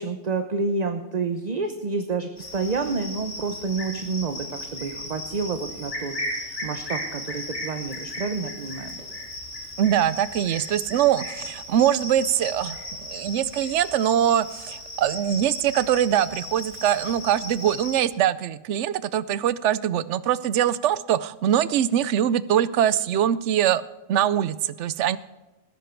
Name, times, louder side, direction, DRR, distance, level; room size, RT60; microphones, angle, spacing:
voice 1, 0.0-8.9, right 4 dB, 40° right, 8 dB, 0.9 m, -29 dB
Cricket, 2.4-18.0, left 1 dB, 90° left, 3.6 m, -36 dB
voice 2, 9.8-23.8 24.1-25.2, right 10 dB, 90° right, 17 dB, 0.9 m, -23 dB
18.5 x 10.0 x 4.5 m, 1.1 s
omnidirectional pair, 1.2 m